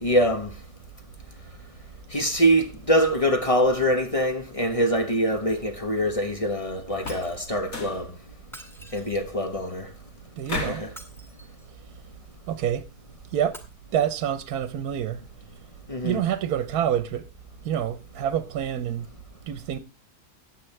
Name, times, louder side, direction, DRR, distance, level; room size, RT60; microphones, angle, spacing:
voice 1, 0.0-0.5 2.1-8.1 8.9-9.9 10.5-10.9 15.9-16.2, equal, 25° left, 1.1 m, -24 dB
sound 1, 6.9-7.4 7.7-8.1 10.5-10.9, left 3 dB, 60° left, 2.8 m, -33 dB
Shatter, 7.1-7.5 8.4-9.5 10.8-11.7 13.4-13.6, equal, ahead, 2.0 m, -46 dB
voice 2, 10.4-10.8 12.5-12.9 13.3-13.6 13.9-15.2 16.0-17.3 17.6-19.1 19.5-19.8, right 10 dB, 80° right, 1.3 m, -27 dB
15.5 x 9.8 x 3.3 m
omnidirectional pair, 1.6 m